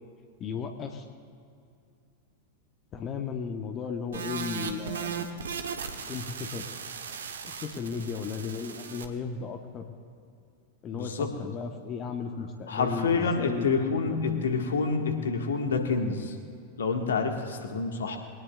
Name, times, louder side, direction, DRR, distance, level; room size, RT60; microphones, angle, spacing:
voice 1, 0.4-1.0 2.9-5.4 6.1-6.6 7.4-9.9 10.8-13.7 14.1-14.5, left 6 dB, 30° left, 5 dB, 1.0 m, -35 dB
sound 1, 4.1-9.1, right 6 dB, 65° right, 1.0 m, -37 dB
voice 2, 10.9-11.3 12.7-16.3 16.8-18.2, left 4 dB, 65° left, 4 dB, 1.5 m, -28 dB
22.0 x 18.5 x 2.4 m, 2.4 s
figure-of-eight pair, 90°, 0 cm